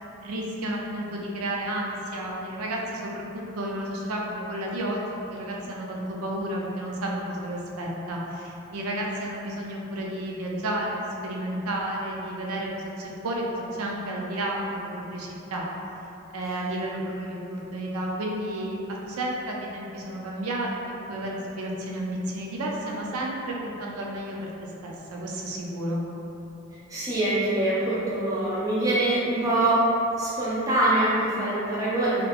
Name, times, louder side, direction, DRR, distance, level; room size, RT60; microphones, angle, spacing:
voice 1, 0.2-15.7 16.3-20.7 21.1-24.4 24.8-26.0, right 1 dB, 85° right, -2 dB, 0.5 m, -31 dB
voice 2, 26.9-29.8 30.2-32.2, right 2 dB, 15° right, -9 dB, 0.6 m, -24 dB
3.2 x 3.2 x 2.4 m, 2.9 s
head